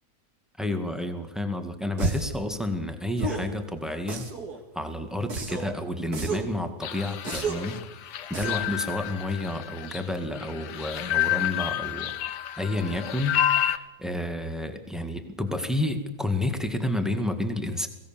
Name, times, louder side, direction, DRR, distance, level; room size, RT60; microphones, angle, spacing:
voice 1, 0.6-4.3 4.7-17.9, left 1 dB, ahead, 6 dB, 1.8 m, -30 dB
sound 1, 2.0-2.4 3.2-3.5 4.1-4.6 5.3-5.7 6.1-6.5 7.2-7.7 8.3-8.7, right 3 dB, 70° right, 2.8 m, -31 dB
sound 2, 6.8-13.8, left 12 dB, 90° left, 1.5 m, -29 dB
22.0 x 17.0 x 7.4 m, 1.0 s
omnidirectional pair, 1.7 m